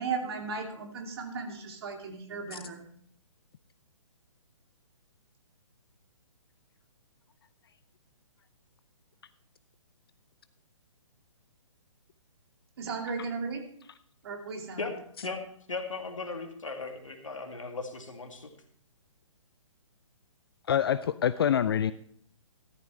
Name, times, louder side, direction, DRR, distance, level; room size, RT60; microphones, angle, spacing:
voice 1, 0.0-2.8 12.8-13.6 14.2-14.8, right 4 dB, 50° right, 3 dB, 2.5 m, -35 dB
voice 2, 15.7-18.5, left 3 dB, 75° left, 4 dB, 2.1 m, -37 dB
voice 3, 20.7-21.9, left 9 dB, 50° left, 14 dB, 0.4 m, -26 dB
14.0 x 11.5 x 3.2 m, 0.62 s
figure-of-eight pair, 130°, 17 cm